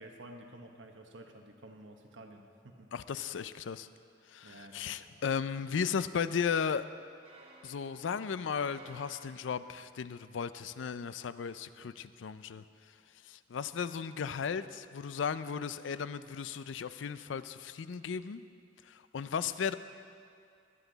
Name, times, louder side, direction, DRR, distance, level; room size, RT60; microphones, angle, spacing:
voice 1, 0.0-2.9 4.4-5.0, right 1 dB, 85° right, 4 dB, 1.2 m, -51 dB
voice 2, 2.9-3.9 4.3-6.9 7.6-12.6 13.2-18.4 18.9-19.7, left 6 dB, 85° left, 14 dB, 0.4 m, -35 dB
sound 1, 7.2-9.9, right 2 dB, 35° right, 1.4 m, -56 dB
22.0 x 8.2 x 4.0 m, 2.5 s
head